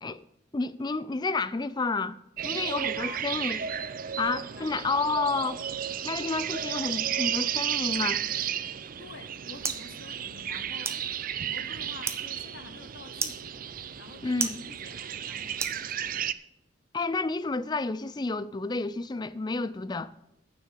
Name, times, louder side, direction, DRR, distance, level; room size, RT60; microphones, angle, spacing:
voice 1, 0.5-3.6 4.2-5.6 6.0-8.2 14.2-14.6 16.9-20.1, left 3 dB, 25° left, 0.4 m, -30 dB
sound 1, 2.4-16.3, right 9 dB, 50° right, 0.5 m, -33 dB
voice 2, 2.5-3.3 4.5-4.7 9.0-16.2, left 4 dB, 80° left, 0.9 m, -49 dB
sound 2, 8.8-16.4, right 4 dB, 15° right, 0.9 m, -39 dB
9.4 x 7.3 x 7.4 m
head